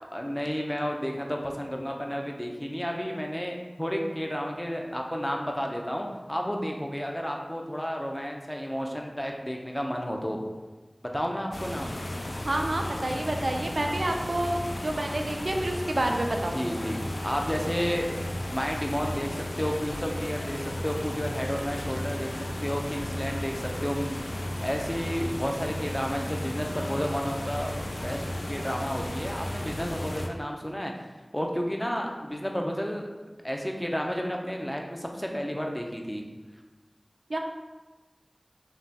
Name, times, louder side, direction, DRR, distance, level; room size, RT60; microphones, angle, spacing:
voice 1, 0.1-10.4 11.1-12.0 14.0-14.2 16.5-18.1 18.5-27.7 28.0-30.9 31.3-33.1 33.4-36.2, equal, 15° left, 1 dB, 0.5 m, -32 dB
sound 1, 11.5-30.3, left 1 dB, 85° left, 0.4 m, -34 dB
voice 2, 12.4-16.6 37.3-37.4, right 1 dB, 85° right, 3 dB, 0.4 m, -28 dB
5.2 x 2.2 x 2.8 m, 1.2 s
wide cardioid pair, 40°, 0 cm